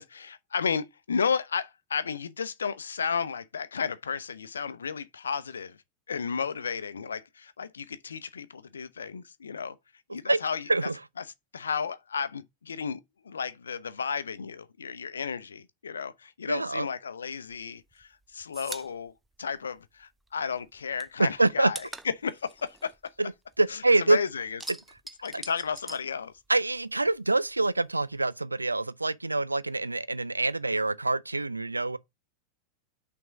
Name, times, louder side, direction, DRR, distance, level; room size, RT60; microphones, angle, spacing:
voice 1, 0.0-5.8 6.1-9.8 10.1-10.9 11.2-11.3 11.5-13.0 13.2-19.1 19.4-23.1 23.7-24.6 25.2-26.3, left 6 dB, 70° left, 0.6 m, -33 dB
voice 2, 16.5-16.9 21.2-21.7 23.6-24.2 26.5-32.0, right 2 dB, 80° right, 0.4 m, -25 dB
sound 1, 17.5-20.3 20.6-23.9 24.2-26.8 27.1-28.2, right 2 dB, 5° right, 0.5 m, -44 dB
6.0 x 3.5 x 5.8 m
figure-of-eight pair, 90°, 0 cm